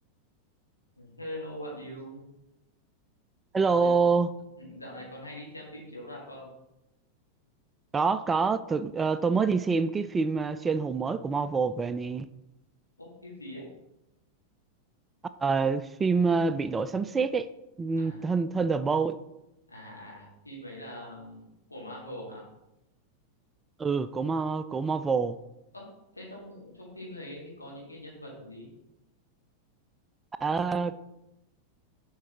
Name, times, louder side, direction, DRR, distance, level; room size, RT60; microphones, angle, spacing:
voice 1, 1.0-2.2 3.5-3.9 4.6-6.5 13.0-13.6 18.0-18.2 19.7-21.4 21.7-22.4 25.7-25.9 26.1-28.7, left 1 dB, 80° left, 2.3 m, -42 dB
voice 2, 3.5-4.3 7.9-12.3 15.4-17.5 17.8-19.2 23.8-25.4 30.4-30.9, right 4 dB, 15° right, 0.3 m, -26 dB
7.5 x 4.7 x 3.5 m
figure-of-eight pair, 90°, 0 cm